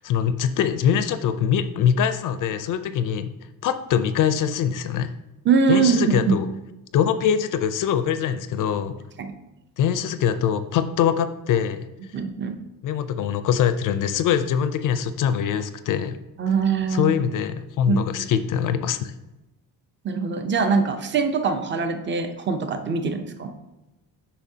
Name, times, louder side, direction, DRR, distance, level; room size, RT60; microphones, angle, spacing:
voice 1, 0.0-3.3 3.6-5.1 5.7-6.5 6.9-9.0 9.8-11.8 12.8-16.2 16.9-19.1, left 8 dB, 55° left, 11 dB, 0.5 m, -23 dB
voice 2, 5.4-6.3 9.2-9.4 12.1-12.6 16.4-17.1 17.9-18.3 20.0-23.5, right 5 dB, 30° right, 7 dB, 0.6 m, -23 dB
8.3 x 5.7 x 2.8 m, 0.99 s
cardioid pair, 140°, 37 cm